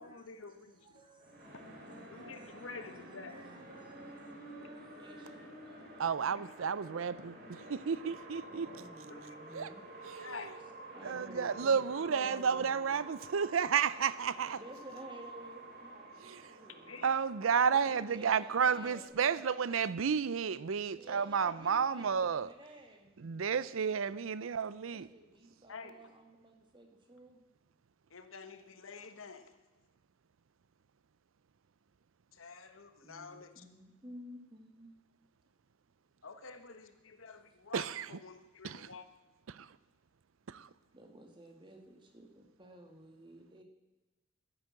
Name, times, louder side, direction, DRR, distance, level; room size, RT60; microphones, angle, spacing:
voice 1, 0.0-1.1 1.5-1.6 1.9-3.4 6.3-6.9 9.1-9.4 10.2-10.6 16.7-17.1 18.8-18.9 19.2-19.8 25.7-26.1 28.1-29.6 32.3-33.6 36.2-39.1, left 4 dB, 85° left, 1.3 m, -49 dB
voice 2, 0.9-4.3 4.6-6.0 8.7-9.8 10.9-13.0 14.6-17.0 17.7-19.1 21.0-23.1 24.8-27.4 33.0-34.9 40.9-43.6, right 1 dB, 25° right, 2.0 m, -54 dB
sound 1, 1.2-19.1, right 2 dB, 50° right, 3.8 m, -50 dB
voice 3, 6.0-8.7 9.5-9.7 10.0-10.3 11.0-14.6 16.2-16.6 17.0-22.5 23.2-25.1 37.7-38.1 38.6-38.9 39.5-39.8 40.5-40.7, right 6 dB, 85° right, 0.5 m, -32 dB
12.0 x 9.9 x 7.7 m
head